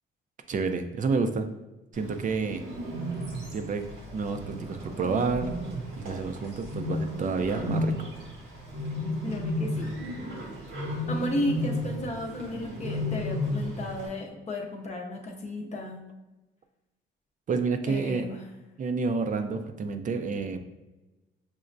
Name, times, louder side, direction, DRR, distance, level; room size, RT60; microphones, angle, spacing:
voice 1, 0.5-1.5 1.9-2.6 3.5-3.9 4.1-5.5 6.0-7.9 17.5-18.3 18.8-20.6, right 4 dB, 40° right, 8 dB, 0.4 m, -29 dB
Bird, 1.9-14.1, left 1 dB, 90° right, 1.2 m, -33 dB
voice 2, 9.2-10.0 11.1-16.0 17.9-18.4, left 1 dB, 35° left, 0 dB, 0.5 m, -34 dB
6.0 x 2.1 x 2.5 m, 1.1 s
cardioid pair, 90°, 20 cm